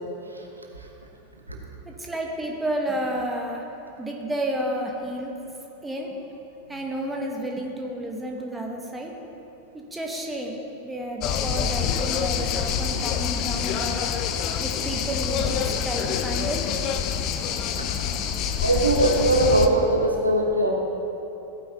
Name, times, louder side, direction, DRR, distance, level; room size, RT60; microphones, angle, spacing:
voice 1, 1.8-3.6 4.0-5.3 5.8-6.2 6.7-9.1 9.7-10.6 10.8-14.1 14.6-16.6 17.9-18.0 18.3-18.4, right 1 dB, 10° right, 0 dB, 1.2 m, -31 dB
sound 1, 11.2-19.7, left 8 dB, 40° left, 0.5 m, -26 dB
voice 2, 18.6-20.7, right 1 dB, 85° right, 0 dB, 1.2 m, -21 dB
15.0 x 9.2 x 2.9 m, 3.0 s
figure-of-eight pair, 90°, 0 cm